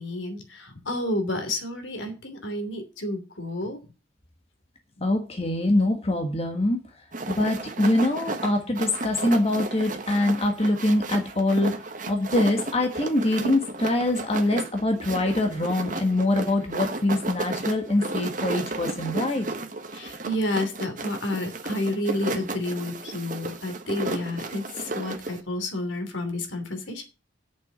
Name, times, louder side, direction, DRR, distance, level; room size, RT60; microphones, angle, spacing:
voice 1, 0.0-3.8 19.9-27.0, left 1 dB, 70° left, 6 dB, 3.0 m, -30 dB
voice 2, 5.0-6.8 7.3-11.8 12.1-19.5, left 1 dB, 30° left, 4 dB, 1.5 m, -24 dB
Shaking a box of things, 7.1-25.4, right 2 dB, 40° right, 1.3 m, -33 dB
8.9 x 7.1 x 8.1 m, 0.32 s
head